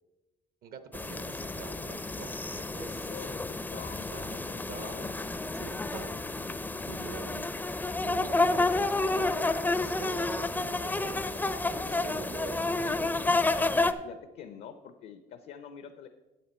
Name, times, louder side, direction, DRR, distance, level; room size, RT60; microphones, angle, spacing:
voice 1, 0.6-3.1 4.1-4.9 5.5-6.1 6.9-7.5 7.8-13.1, right 6 dB, 65° right, 10 dB, 0.8 m, -45 dB
sound 1, 0.9-13.9, left 2 dB, 10° left, 0.4 m, -30 dB
voice 2, 3.1-5.1 14.0-16.1, left 7 dB, 70° left, 9 dB, 0.6 m, -46 dB
9.2 x 7.4 x 4.3 m, 1.1 s
cardioid pair, 110°, 17 cm